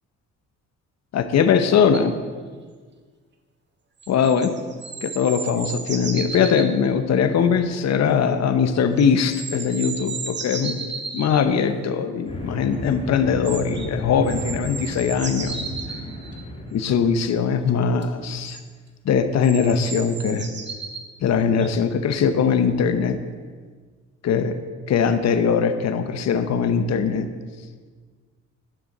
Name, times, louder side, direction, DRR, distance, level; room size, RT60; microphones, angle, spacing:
voice 1, 1.1-2.1 4.1-4.5 5.0-10.8 11.1-15.7 16.7-18.6 19.0-20.5 21.2-23.2 24.2-24.6 24.9-27.3, left 6 dB, 60° left, 10 dB, 0.9 m, -21 dB
sound 1, 1.9-2.1 4.0-6.7 9.0-11.4 13.4-13.9 14.3-16.4 18.0-18.1 18.4-18.6 19.4-21.1 21.6-21.7, right 4 dB, 35° right, 1.4 m, -34 dB
sound 2, 12.3-17.3, left 1 dB, 20° left, 2.2 m, -34 dB
10.0 x 6.9 x 6.6 m, 1.5 s
cardioid pair, 90°, 30 cm